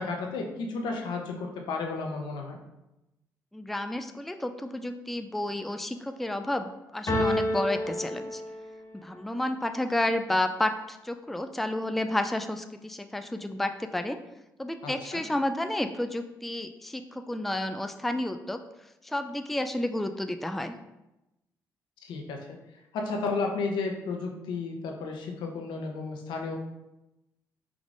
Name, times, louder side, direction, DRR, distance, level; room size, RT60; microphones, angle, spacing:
voice 1, 0.0-2.6 14.8-15.2 22.0-22.6 22.9-26.6, left 4 dB, 80° left, 2 dB, 0.8 m, -33 dB
voice 2, 3.5-8.4 9.0-14.2 14.6-18.6 19.0-20.7, left 1 dB, 5° left, 7 dB, 0.3 m, -31 dB
sound 1, 7.1-9.0, left 1 dB, 40° left, 1.5 m, -29 dB
4.9 x 3.6 x 2.5 m, 0.95 s
supercardioid pair, 70°, 8 cm